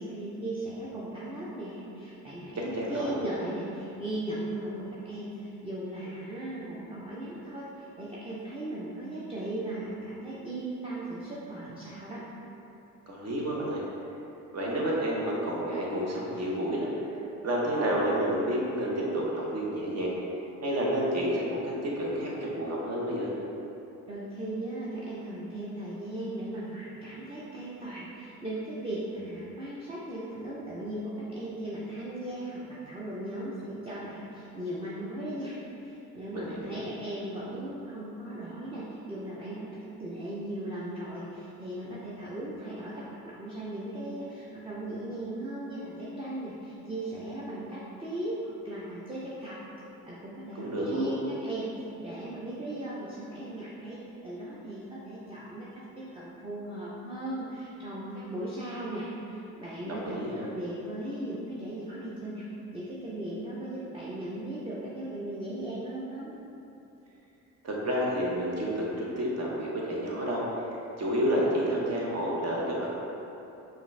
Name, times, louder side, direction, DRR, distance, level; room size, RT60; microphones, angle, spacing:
voice 1, 0.0-12.2 24.1-35.6 35.8-49.6 50.1-60.2 60.5-62.4 62.7-66.3, right 1 dB, 15° right, -7 dB, 0.6 m, -37 dB
voice 2, 2.6-3.1 13.1-13.8 14.5-20.1 20.6-23.3 36.3-36.8 50.5-51.1 59.8-60.5 67.6-70.4 71.0-72.9, equal, 50° right, -4 dB, 1.0 m, -30 dB
4.9 x 2.5 x 3.3 m, 2.9 s
cardioid pair, 90°, 33 cm